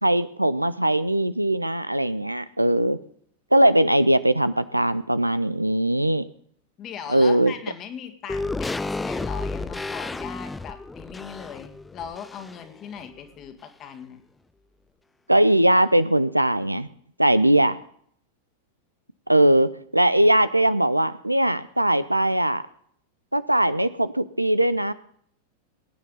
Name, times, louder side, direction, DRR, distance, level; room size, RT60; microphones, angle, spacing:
voice 1, 0.0-3.0 3.5-6.2 7.1-7.5 15.3-16.9 17.2-17.8 19.3-22.6 23.3-24.9, right 1 dB, 85° right, 15 dB, 0.6 m, -20 dB
voice 2, 6.8-14.2, left 8 dB, 30° left, 7 dB, 1.9 m, -39 dB
sound 1, 8.3-12.8 13.1-13.2, left 3 dB, 10° left, 0.4 m, -32 dB
21.0 x 9.6 x 4.0 m, 0.63 s
figure-of-eight pair, 90°, 0 cm